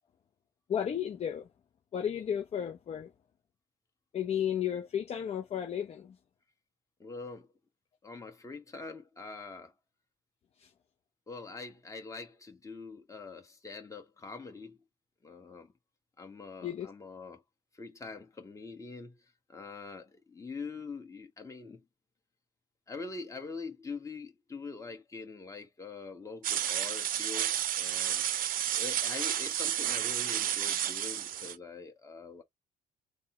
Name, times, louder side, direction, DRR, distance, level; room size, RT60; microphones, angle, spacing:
voice 1, 0.7-1.5 1.9-3.1 4.1-6.2 10.6-10.7 16.6-16.9, left 9 dB, 40° left, 0.6 m, -33 dB
voice 2, 7.0-7.5 8.0-9.7 11.3-14.8 15.2-15.7 16.2-17.4 17.7-19.2 19.5-21.8 22.9-28.2 28.7-32.4, left 4 dB, 20° left, 1.4 m, -44 dB
sound 1, 26.4-31.6, right 11 dB, 55° right, 0.6 m, -31 dB
3.5 x 2.2 x 4.3 m
cardioid pair, 110°, 17 cm